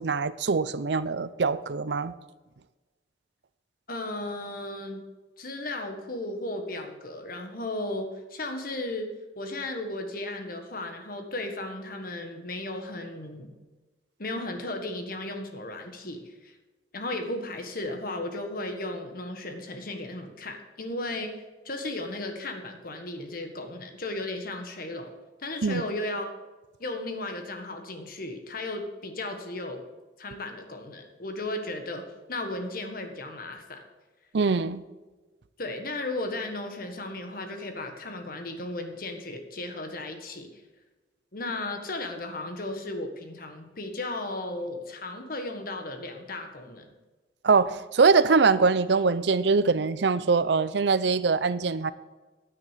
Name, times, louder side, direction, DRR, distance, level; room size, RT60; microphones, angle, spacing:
voice 1, 0.0-2.1 25.6-25.8 34.3-34.8 47.4-51.9, right 4 dB, 65° right, 15 dB, 0.5 m, -23 dB
voice 2, 3.9-5.0 5.4-13.5 14.2-16.5 16.9-21.3 21.6-25.1 25.4-26.3 26.8-29.8 30.2-33.8 35.6-40.5 41.3-46.9, left 2 dB, 50° left, 5 dB, 1.5 m, -35 dB
9.8 x 9.4 x 5.1 m, 1.2 s
head